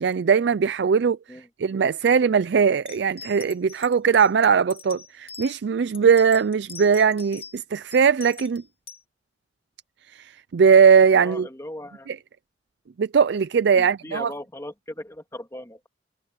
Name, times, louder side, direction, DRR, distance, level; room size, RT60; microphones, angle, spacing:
voice 1, 0.0-1.2 1.6-8.6 10.1-11.5 12.1-12.2 13.0-14.3, right 6 dB, 65° right, 0.4 m, -20 dB
sound 1, 2.9-5.5 5.9-7.6 7.9-9.0, left 6 dB, 30° left, 2.1 m, -42 dB
voice 2, 11.1-12.1 13.7-15.9, left 1 dB, 15° left, 2.2 m, -38 dB
head